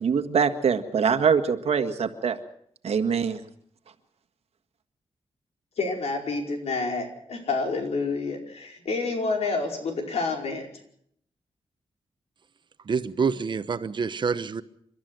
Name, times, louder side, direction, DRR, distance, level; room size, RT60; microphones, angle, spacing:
voice 1, 0.0-2.4 2.8-3.4, right 6 dB, 80° right, 7 dB, 1.7 m, -23 dB
voice 2, 5.8-10.7, left 3 dB, 85° left, 2 dB, 4.9 m, -28 dB
voice 3, 12.9-14.6, right 5 dB, 50° right, 12 dB, 1.1 m, -27 dB
30.0 x 12.5 x 7.8 m, 0.69 s
wide cardioid pair, 145°, 10 cm